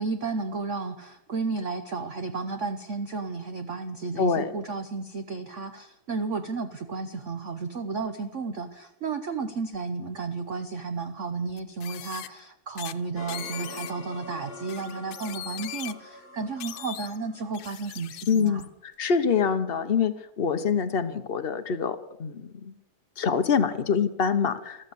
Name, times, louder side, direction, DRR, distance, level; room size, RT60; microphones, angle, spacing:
voice 1, 0.0-18.7, right 4 dB, 55° right, 8 dB, 0.8 m, -33 dB
voice 2, 4.2-4.5 18.3-22.8 23.2-24.9, left 6 dB, 55° left, 10 dB, 0.6 m, -25 dB
sound 1, 9.7-9.8 11.5-12.3 12.8-12.9 13.3-13.9 14.7-15.9 16.6-17.2 17.5-18.7, left 13 dB, 75° left, 1.6 m, -39 dB
sound 2, 13.2-18.2, left 2 dB, 35° left, 1.2 m, -45 dB
14.5 x 13.5 x 7.0 m, 0.80 s
omnidirectional pair, 2.4 m